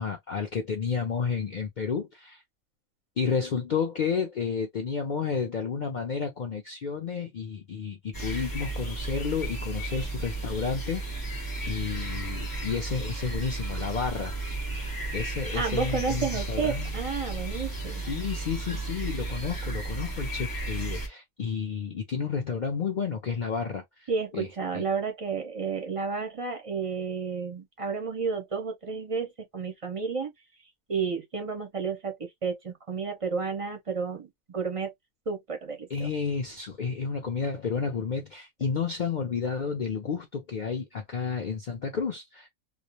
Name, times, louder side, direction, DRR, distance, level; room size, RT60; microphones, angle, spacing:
voice 1, 0.0-2.4 3.2-11.1 11.7-14.3 15.1-16.9 18.1-24.5 24.7-24.8 35.9-42.5, left 6 dB, 75° left, 0.4 m, -31 dB
sound 1, 8.1-21.1, right 2 dB, 20° left, 0.6 m, -33 dB
voice 2, 15.5-18.1 24.1-30.3 30.9-34.9 35.3-36.1, right 5 dB, 40° right, 0.4 m, -31 dB
2.4 x 2.0 x 2.8 m
omnidirectional pair, 1.4 m